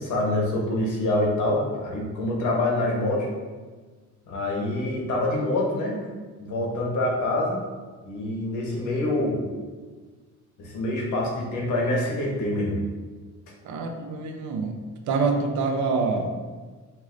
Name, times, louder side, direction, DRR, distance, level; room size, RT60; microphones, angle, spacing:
voice 1, 0.0-3.3 4.3-6.0 6.4-7.6 8.0-9.4 10.6-12.8, left 1 dB, 80° left, -2 dB, 1.1 m, -26 dB
voice 2, 13.6-14.7 15.1-16.3, right 4 dB, 75° right, 5 dB, 0.6 m, -25 dB
6.4 x 2.7 x 2.5 m, 1.4 s
cardioid pair, 90°, 30 cm